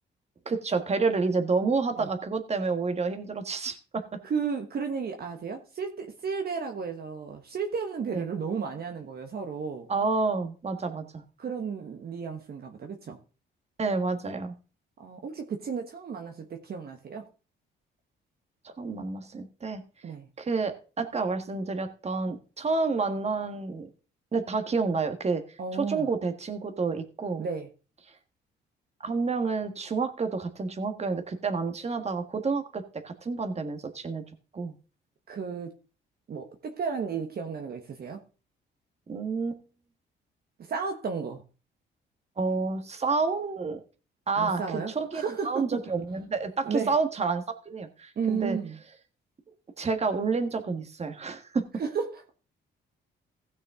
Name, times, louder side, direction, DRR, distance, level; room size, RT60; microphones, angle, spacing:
voice 1, 0.4-4.0 8.1-8.2 9.9-11.2 13.8-14.5 18.8-19.8 20.4-23.9 24.3-25.4 25.7-27.5 29.0-34.2 34.5-34.7 39.1-39.6 42.4-43.8 44.3-44.6 44.9-48.6 49.8-51.6, right 4 dB, 35° right, 1.6 m, -29 dB
voice 2, 4.2-9.9 11.4-13.2 15.0-17.3 20.0-20.3 25.6-26.1 27.4-27.7 35.3-35.7 36.3-38.2 40.6-41.4 44.4-45.8 46.6-46.9 48.2-48.8 51.8-52.3, right 6 dB, 50° right, 1.3 m, -33 dB
16.0 x 6.3 x 3.7 m
cardioid pair, 90°, 20 cm